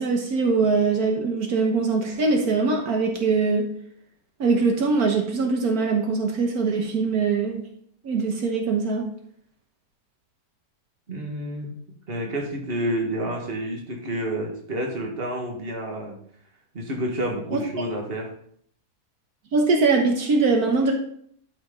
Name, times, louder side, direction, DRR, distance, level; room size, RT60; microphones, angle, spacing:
voice 1, 0.0-3.7 4.4-7.6 8.0-9.0 17.5-17.6 19.5-20.9, right 4 dB, 75° right, 2 dB, 1.7 m, -22 dB
voice 2, 11.1-11.7 12.1-16.2 16.7-18.3, right 1 dB, 40° right, 1 dB, 1.9 m, -29 dB
12.5 x 5.2 x 3.8 m, 0.63 s
omnidirectional pair, 1.6 m